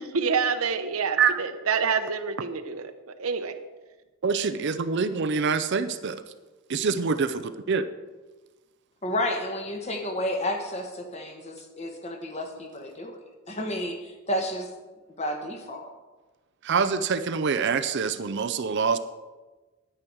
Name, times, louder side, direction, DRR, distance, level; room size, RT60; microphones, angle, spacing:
voice 1, 0.0-2.9 3.2-3.5, right 5 dB, 80° right, 9 dB, 0.8 m, -27 dB
voice 2, 4.2-6.2 6.7-7.9 16.6-19.0, right 5 dB, 55° right, 11 dB, 0.5 m, -25 dB
voice 3, 9.0-13.2 13.5-14.7 15.2-15.9, left 1 dB, 30° left, 4 dB, 1.4 m, -31 dB
10.0 x 9.8 x 4.6 m, 1.2 s
head